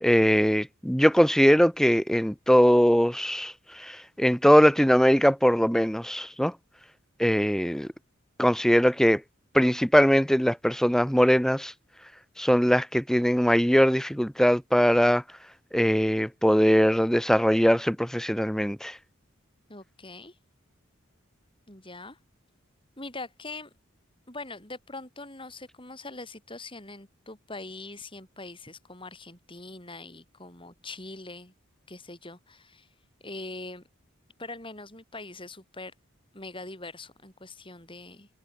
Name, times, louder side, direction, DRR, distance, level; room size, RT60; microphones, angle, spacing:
voice 1, 0.0-6.5 7.2-7.9 8.4-9.2 9.5-11.7 12.4-15.2 15.7-19.0, equal, ahead, 1.7 m, -21 dB
voice 2, 19.7-20.4 21.7-22.2 23.0-23.7 24.3-31.5 31.9-32.9 33.2-33.8 34.4-35.9 36.3-38.3, left 2 dB, 25° left, 7.8 m, -42 dB
head